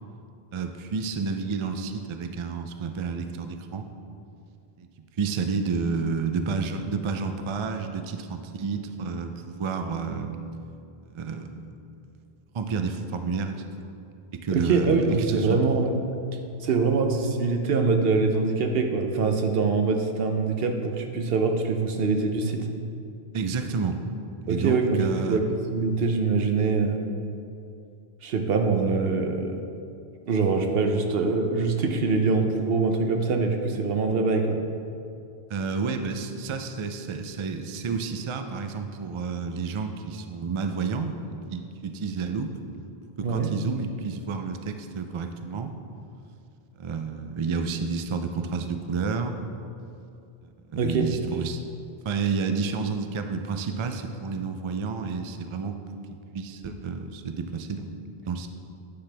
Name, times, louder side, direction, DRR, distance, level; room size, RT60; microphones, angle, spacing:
voice 1, 0.5-3.9 4.8-4.9 5.2-10.4 11.1-11.6 12.5-13.9 14.3-15.6 23.3-24.0 24.5-25.4 35.5-41.1 41.5-42.5 43.2-45.7 46.8-49.3 50.4-51.6 52.0-55.8 56.1-57.9 58.2-58.5, right 5 dB, 50° right, 6 dB, 0.3 m, -30 dB
voice 2, 14.6-15.9 16.6-22.7 24.5-27.0 28.2-29.6 30.3-34.6 43.2-43.5 50.8-51.1, right 4 dB, 70° right, 4 dB, 0.9 m, -24 dB
9.9 x 5.8 x 3.4 m, 2.6 s
omnidirectional pair, 1.0 m